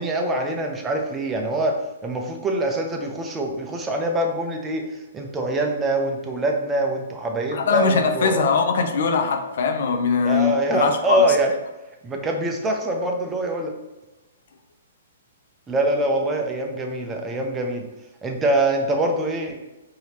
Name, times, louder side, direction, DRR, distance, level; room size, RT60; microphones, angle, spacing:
voice 1, 0.0-4.8 5.1-8.4 10.2-11.5 12.0-13.7 15.7-17.9 18.2-19.6, right 1 dB, 15° right, 2 dB, 0.6 m, -24 dB
voice 2, 7.5-11.3, left 5 dB, 65° left, 6 dB, 0.5 m, -21 dB
4.9 x 2.9 x 2.8 m, 1.0 s
hypercardioid pair, 140°, 0 cm